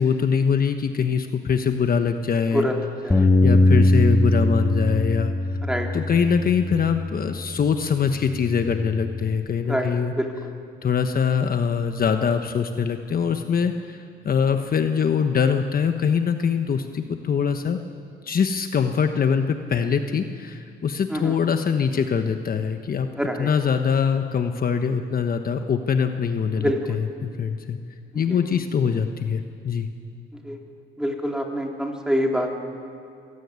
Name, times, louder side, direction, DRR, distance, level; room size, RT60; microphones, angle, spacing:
voice 1, 0.0-2.7 3.1-5.3 5.9-10.1 10.8-17.8 18.2-23.1 23.4-27.8 28.1-29.9, left 6 dB, 45° left, 6 dB, 1.2 m, -23 dB
Bass guitar, 3.1-7.6 8.2-9.3, left 1 dB, 15° left, 1.9 m, -21 dB
voice 2, 9.7-10.3 21.1-21.4 23.2-23.5 26.6-27.0 28.3-28.4 30.4-30.6 31.0-32.5, equal, 5° right, 1 dB, 3.8 m, -25 dB
24.5 x 16.5 x 9.7 m, 2.4 s
cardioid pair, 90°, 20 cm